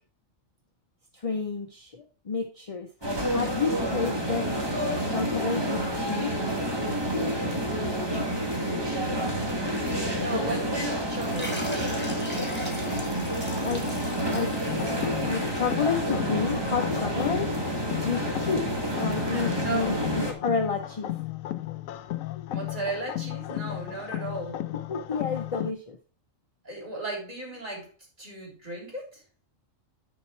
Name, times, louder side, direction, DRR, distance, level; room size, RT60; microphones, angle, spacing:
voice 1, 1.1-4.5 5.0-6.4 10.2-10.5 13.6-13.9 14.3-14.6 15.2-17.6 18.0-20.0 20.2-21.1 24.9-26.0, left 5 dB, 40° left, 5 dB, 0.5 m, -30 dB
sound 1, 3.0-20.3, right 1 dB, 20° right, 1.7 m, -29 dB
voice 2, 8.1-9.5 10.1-12.7 19.4-20.0 22.5-24.6 26.6-27.9 28.2-29.2, right 2 dB, 35° right, -2 dB, 3.4 m, -36 dB
sound 2, 11.2-16.3, left 1 dB, 10° left, 2.0 m, -39 dB
sound 3, 14.7-25.7, left 14 dB, 80° left, 1.0 m, -35 dB
10.0 x 4.7 x 4.4 m, 0.37 s
omnidirectional pair, 1.4 m